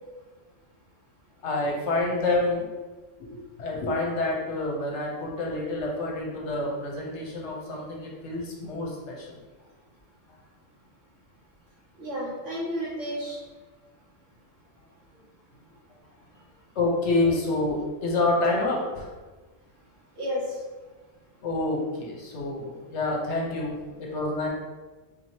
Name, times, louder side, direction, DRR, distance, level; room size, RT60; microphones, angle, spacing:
voice 1, 1.4-2.7 3.3-9.4 16.8-19.1 21.4-24.5, left 2 dB, 65° left, -2 dB, 1.0 m, -28 dB
voice 2, 12.0-13.4 16.3-16.4 19.8-19.9 20.2-20.9, equal, 65° right, -8 dB, 1.7 m, -32 dB
4.2 x 3.0 x 2.7 m, 1.3 s
omnidirectional pair, 1.3 m